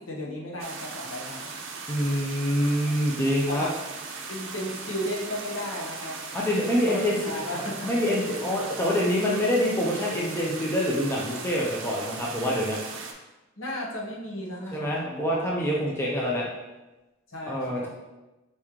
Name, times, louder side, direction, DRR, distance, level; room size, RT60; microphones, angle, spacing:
voice 1, 0.0-1.4 3.5-3.7 4.3-6.2 6.9-7.9 13.6-15.8 16.1-16.2 17.3-17.9, left 1 dB, 65° left, -3 dB, 0.9 m, -34 dB
sound 1, 0.6-13.1, right 4 dB, 60° right, 0.5 m, -38 dB
voice 2, 1.9-3.7 6.3-7.2 7.8-12.8 14.7-16.5 17.5-17.9, equal, 10° left, -4 dB, 0.5 m, -26 dB
4.2 x 3.1 x 3.7 m, 1.1 s
head